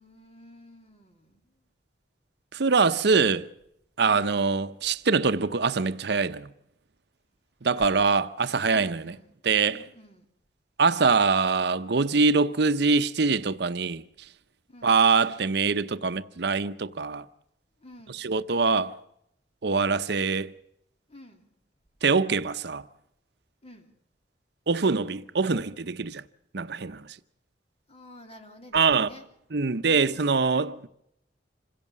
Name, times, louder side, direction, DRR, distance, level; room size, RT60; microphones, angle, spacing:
voice 1, 0.0-1.7 4.0-4.3 7.8-8.1 8.7-9.3 9.6-10.3 14.7-15.0 17.8-18.3 21.1-21.6 23.6-23.9 27.9-29.2 29.8-30.3, equal, 35° left, 3.0 m, -50 dB
voice 2, 2.5-3.5 4.0-6.5 7.6-9.1 9.4-9.8 10.8-14.0 14.8-17.2 18.2-18.9 19.6-20.5 22.0-22.8 24.7-26.2 26.5-27.2 28.7-29.1 29.5-30.9, right 4 dB, 65° right, 0.8 m, -24 dB
26.5 x 16.5 x 7.5 m
head